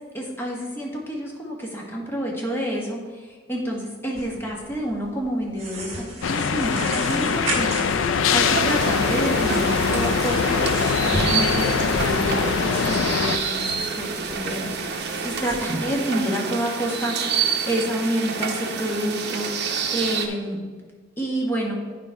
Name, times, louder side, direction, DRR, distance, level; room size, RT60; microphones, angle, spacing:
voice 1, 0.1-10.6 11.0-20.6 21.2-21.7, equal, 10° left, -2 dB, 1.4 m, -28 dB
sound 1, 4.1-15.6, right 2 dB, 30° right, 1.7 m, -36 dB
sound 2, 6.2-13.4, left 6 dB, 80° left, 0.4 m, -23 dB
sound 3, 8.4-20.3, right 5 dB, 55° right, 0.8 m, -28 dB
9.1 x 5.1 x 4.6 m, 1.5 s
head